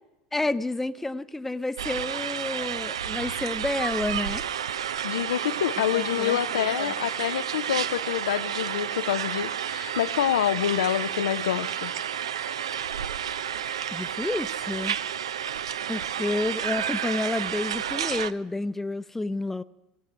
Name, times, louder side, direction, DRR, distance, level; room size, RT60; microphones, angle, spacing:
voice 1, 0.3-4.4 5.9-6.9 13.9-15.0 15.9-19.6, left 2 dB, 10° left, 0.6 m, -30 dB
sound 1, 1.8-18.3, right 9 dB, 90° right, 0.4 m, -31 dB
voice 2, 5.0-11.9, left 11 dB, 85° left, 0.4 m, -27 dB
18.0 x 7.8 x 8.0 m
hypercardioid pair, 80°, 3 cm